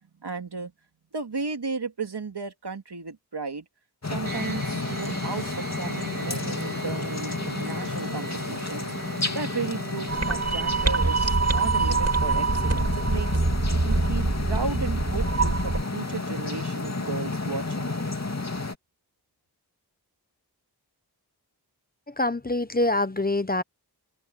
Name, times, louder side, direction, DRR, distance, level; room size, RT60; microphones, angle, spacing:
voice 1, 0.2-0.7 1.1-3.6 4.1-8.9 9.3-13.4 13.8-18.1, right 4 dB, 75° right, 2.7 m, -34 dB
sound 1, 4.0-18.8, left 3 dB, 40° left, 2.7 m, -31 dB
sound 2, 4.2-10.8, right 3 dB, 55° right, 7.4 m, -38 dB
sound 3, 10.1-15.8, right 3 dB, 40° right, 2.5 m, -24 dB
voice 2, 22.1-23.6, left 2 dB, 20° left, 0.9 m, -25 dB
open air
wide cardioid pair, 50°, 40 cm